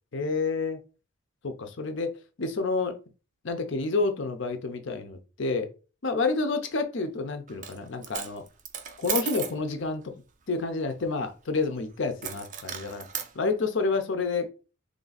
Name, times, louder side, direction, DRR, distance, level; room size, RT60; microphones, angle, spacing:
voice 1, 0.1-0.8 1.4-2.1 2.4-2.9 3.4-5.7 6.0-8.4 9.0-10.0 10.5-13.1 13.3-14.5, left 3 dB, 55° left, 0.6 m, -29 dB
Coin (dropping), 7.5-7.8 8.0-9.6 12.2-13.3, right 8 dB, 35° right, 0.4 m, -34 dB
3.3 x 2.5 x 3.9 m
head